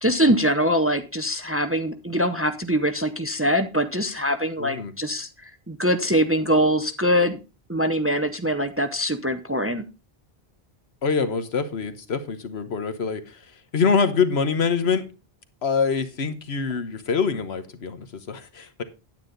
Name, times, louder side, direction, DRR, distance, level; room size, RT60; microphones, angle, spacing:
voice 1, 0.0-7.4 7.7-9.8, equal, 15° right, 0.6 m, -23 dB
voice 2, 4.6-4.9 11.0-13.5 13.7-15.0 15.6-18.8, left 5 dB, 85° left, 1.4 m, -25 dB
9.5 x 9.1 x 3.9 m
omnidirectional pair, 1.0 m